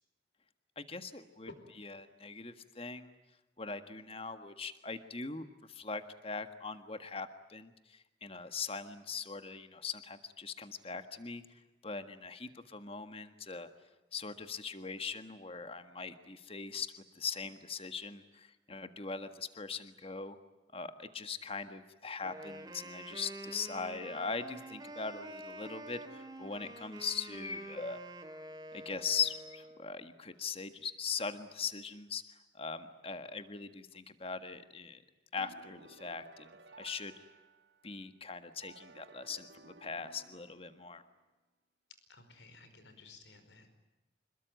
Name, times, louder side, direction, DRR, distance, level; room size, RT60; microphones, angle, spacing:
voice 1, 0.8-1.5 1.8-3.1 3.6-11.4 11.8-13.7 14.1-16.9 17.2-20.4 20.7-28.0 28.7-35.0 35.3-37.1 37.8-41.0, left 5 dB, 30° left, 9 dB, 1.6 m, -41 dB
Wind instrument woodwind instrument, 22.1-29.9, right 1 dB, 20° right, 2.7 m, -47 dB
sound 1, 35.4-38.0 38.6-41.1, right 3 dB, 75° right, 1.7 m, -57 dB
voice 2, 42.1-43.7, left 3 dB, 85° left, 9 dB, 5.0 m, -54 dB
27.0 x 22.0 x 9.1 m, 1.0 s
head